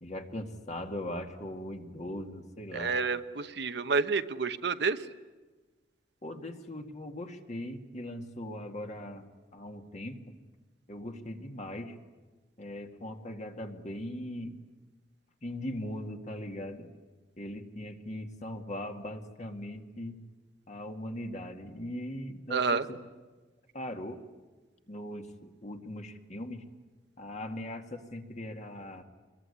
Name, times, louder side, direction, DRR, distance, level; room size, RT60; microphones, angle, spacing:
voice 1, 0.0-3.0 6.2-10.2 10.9-12.0 12.6-14.5 15.4-16.9 17.4-20.1 20.7-23.0 23.7-24.2 24.9-26.6 27.2-29.0, left 1 dB, 40° left, 4 dB, 2.1 m, -40 dB
voice 2, 2.7-5.0 22.5-22.8, right 4 dB, 70° right, 10 dB, 1.0 m, -29 dB
24.5 x 22.0 x 9.8 m, 1.3 s
head